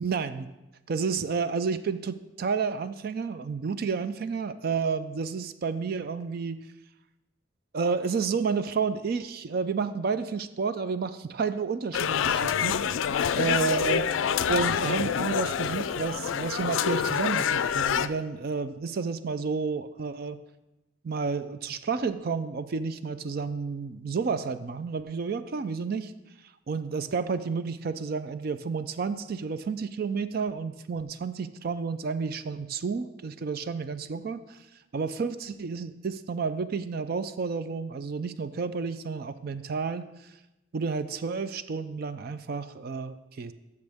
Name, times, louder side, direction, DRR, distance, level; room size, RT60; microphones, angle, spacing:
voice 1, 0.0-0.5 0.9-6.7 7.7-12.8 13.4-14.1 14.5-20.4 21.0-26.1 26.7-34.6 34.9-40.1 40.7-43.5, right 5 dB, 50° right, 12 dB, 0.4 m, -31 dB
sound 1, 11.9-18.1, left 8 dB, 80° left, 0.4 m, -26 dB
13.0 x 6.7 x 3.5 m, 0.96 s
head